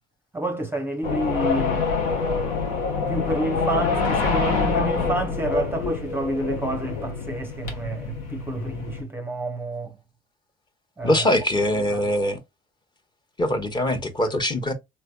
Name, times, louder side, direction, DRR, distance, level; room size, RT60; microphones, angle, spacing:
voice 1, 0.3-1.8 3.1-10.0 11.0-11.3 11.9-12.1, right 1 dB, 10° right, 0.6 m, -29 dB
sound 1, 1.0-9.0, left 4 dB, 85° left, 1.0 m, -26 dB
voice 2, 11.0-12.4 13.4-14.7, left 1 dB, 25° left, 0.9 m, -22 dB
3.3 x 3.0 x 2.2 m
supercardioid pair, 80°, 19 cm